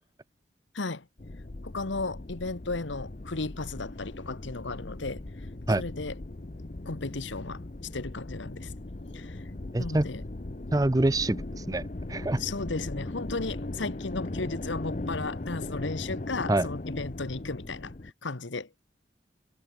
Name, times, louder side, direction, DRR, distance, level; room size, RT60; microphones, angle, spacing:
voice 1, 0.7-1.0 1.6-5.2 5.8-6.2 6.8-7.6 7.9-8.7 9.1-9.4 9.8-10.2 12.4-17.9 18.2-18.8, left 3 dB, 80° left, 1.3 m, -35 dB
sound 1, 1.2-18.1, left 2 dB, 40° left, 0.8 m, -38 dB
voice 2, 9.7-10.1 10.7-12.4 16.5-16.7, right 2 dB, 20° right, 0.5 m, -26 dB
head